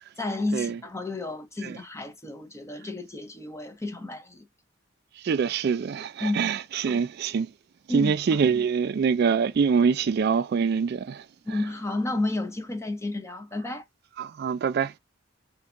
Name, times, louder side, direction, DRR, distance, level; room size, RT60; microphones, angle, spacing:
voice 1, 0.2-4.5 6.2-6.4 6.7-7.0 7.9-8.4 11.5-13.8, left 2 dB, 15° left, 0.7 m, -31 dB
voice 2, 5.2-7.5 7.9-11.2 14.2-14.9, right 6 dB, 50° right, 0.3 m, -24 dB
3.6 x 2.7 x 2.5 m
head